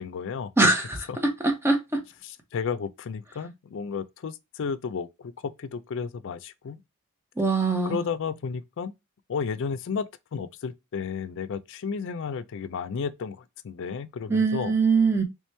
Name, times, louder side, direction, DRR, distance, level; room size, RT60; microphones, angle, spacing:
voice 1, 0.0-0.5 1.1-1.2 2.2-5.3 5.6-6.8 7.9-8.9 9.3-14.7, left 6 dB, 60° left, 0.4 m, -33 dB
voice 2, 0.6-2.0 7.4-8.0 14.3-15.2, right 3 dB, 10° right, 0.7 m, -23 dB
3.3 x 3.0 x 3.2 m
head